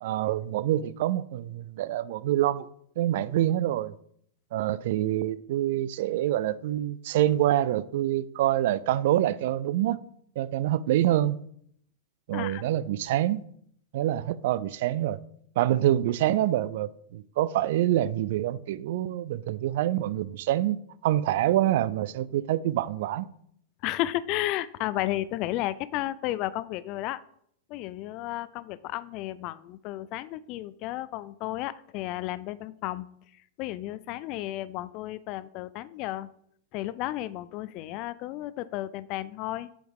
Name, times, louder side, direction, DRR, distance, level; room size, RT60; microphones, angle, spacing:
voice 1, 0.0-2.7 3.0-3.9 4.5-10.0 10.4-11.4 12.3-13.4 13.9-15.2 15.6-23.3, right 13 dB, 65° right, 0.3 m, -26 dB
voice 2, 12.3-12.6 23.8-27.2 27.7-33.1 33.6-36.3 36.7-39.7, left 15 dB, 45° left, 0.3 m, -33 dB
8.0 x 3.5 x 4.8 m
hypercardioid pair, 120°, 0 cm